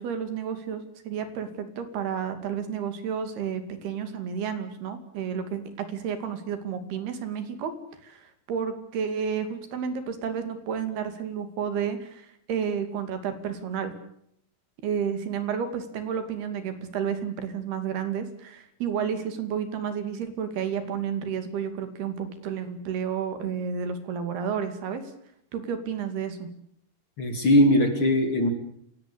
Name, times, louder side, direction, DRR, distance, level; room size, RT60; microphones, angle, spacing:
voice 1, 0.0-7.7 8.0-13.9 14.8-25.1 25.5-26.5, right 7 dB, 80° right, 9 dB, 4.4 m, -31 dB
voice 2, 27.2-28.5, left 1 dB, 35° left, 6 dB, 3.0 m, -20 dB
28.0 x 17.0 x 8.5 m, 0.72 s
omnidirectional pair, 4.5 m